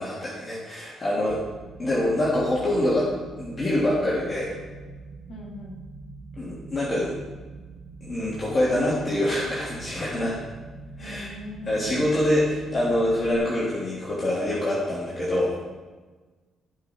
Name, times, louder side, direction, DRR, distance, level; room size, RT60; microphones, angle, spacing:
voice 1, 0.0-1.4 1.8-3.1 3.4-4.5 6.4-7.1 8.0-10.4 11.0-11.3 11.6-15.5, left 1 dB, 30° left, -8 dB, 3.2 m, -25 dB
sound 1, 1.3-13.3, right 3 dB, 60° right, 1.9 m, -43 dB
voice 2, 5.3-5.8 11.0-12.0, left 1 dB, 60° left, -2 dB, 3.0 m, -40 dB
17.5 x 6.1 x 4.7 m, 1.3 s
cardioid pair, 90°, 0 cm